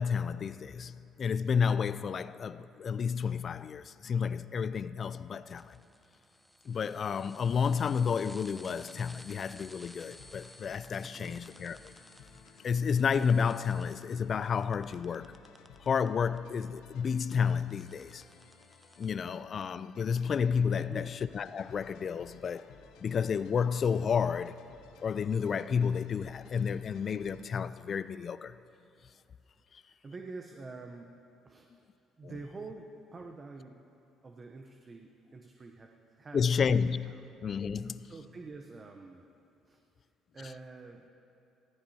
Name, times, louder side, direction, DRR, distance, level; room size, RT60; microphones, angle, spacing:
voice 1, 0.0-5.8 6.7-11.9 12.6-15.4 15.8-18.2 19.0-22.7 23.0-24.6 25.0-28.5 32.2-32.3 36.3-37.1 37.4-38.1, left 6 dB, 50° left, 0.3 m, -31 dB
sound 1, 5.5-16.4 16.7-19.1, left 1 dB, ahead, 0.7 m, -56 dB
sound 2, 9.8-27.5, left 6 dB, 75° left, 0.7 m, -57 dB
voice 2, 11.0-11.3 20.8-21.1 29.8-31.2 31.4-31.7 32.2-33.8 34.2-36.8 37.1-37.2 38.0-39.3 39.7-39.8 40.3-41.1, right 3 dB, 35° right, 0.7 m, -47 dB
15.5 x 14.0 x 2.8 m
hypercardioid pair, 60°, 0 cm